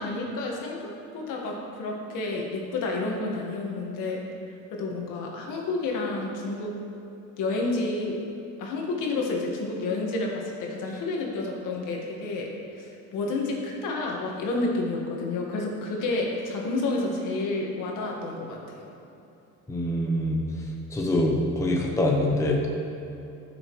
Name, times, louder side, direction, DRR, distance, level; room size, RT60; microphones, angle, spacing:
voice 1, 0.0-4.2 4.7-6.7 7.4-8.1 8.6-18.9, left 2 dB, 75° left, -1 dB, 1.7 m, -30 dB
voice 2, 19.7-20.4 20.9-22.7, left 1 dB, 10° left, -1 dB, 0.7 m, -24 dB
14.0 x 6.3 x 3.2 m, 2.8 s
cardioid pair, 170°, 32 cm